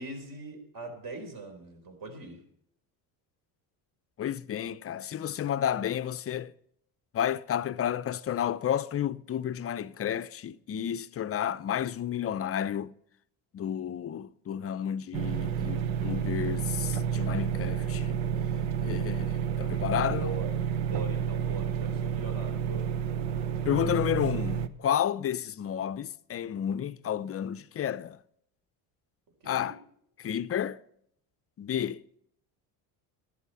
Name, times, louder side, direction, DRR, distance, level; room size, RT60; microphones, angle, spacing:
voice 1, 0.0-2.4 20.2-20.6 20.8-23.0 29.4-29.8, right 3 dB, 45° right, 4.1 m, -41 dB
voice 2, 4.2-6.5 7.1-12.9 13.5-18.2 18.8-20.3 23.6-28.2 29.4-29.8 30.2-30.8 31.6-32.0, left 9 dB, 30° left, 0.6 m, -31 dB
sound 1, 15.1-24.7, right 8 dB, 80° right, 1.1 m, -30 dB
14.5 x 11.0 x 4.2 m
cardioid pair, 105°, 45 cm